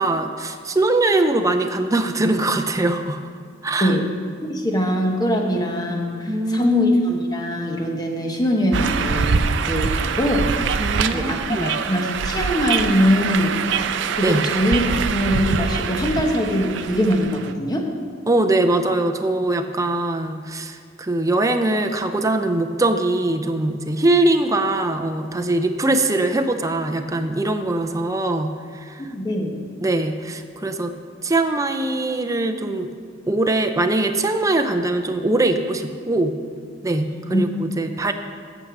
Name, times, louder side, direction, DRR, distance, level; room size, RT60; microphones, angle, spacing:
voice 1, 0.0-3.2 3.6-4.0 6.3-6.7 10.8-11.7 14.2-14.5 18.3-29.0 29.8-30.9 31.2-32.9 33.3-36.3 36.8-38.1, right 2 dB, 15° right, 6 dB, 0.5 m, -22 dB
voice 2, 4.5-9.4 9.7-10.5 11.1-13.6 14.2-17.9 29.1-29.6 37.1-37.4 37.7-37.9, equal, 20° left, 2 dB, 1.1 m, -22 dB
sound 1, 8.7-17.5, right 5 dB, 65° right, 0.4 m, -24 dB
9.0 x 6.6 x 7.2 m, 2.1 s
head